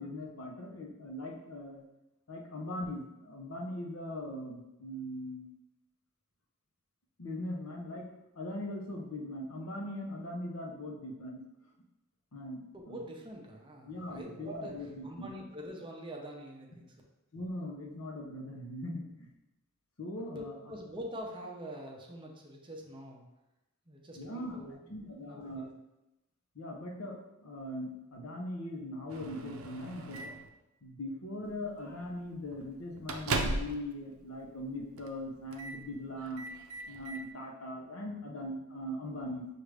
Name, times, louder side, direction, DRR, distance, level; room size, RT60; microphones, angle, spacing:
voice 1, 0.0-1.8 2.3-5.5 7.2-8.1 8.3-11.4 12.3-12.6 12.9-13.0 13.8-15.3 17.3-19.3 20.0-20.5 24.2-24.6 24.9-25.7 26.5-30.2 30.8-36.4 36.9-39.5, left 1 dB, 85° left, 0 dB, 0.8 m, -40 dB
voice 2, 12.7-17.0 20.3-23.2 23.9-25.7, equal, 25° right, 0 dB, 0.6 m, -45 dB
Microwave oven, 29.1-30.5 31.4-31.7 32.0-32.1 32.5-33.9 34.2-34.3 35.0-35.2 35.5-35.8 36.2-37.2, right 3 dB, 90° right, 0.5 m, -37 dB
6.1 x 2.5 x 3.3 m, 0.96 s
head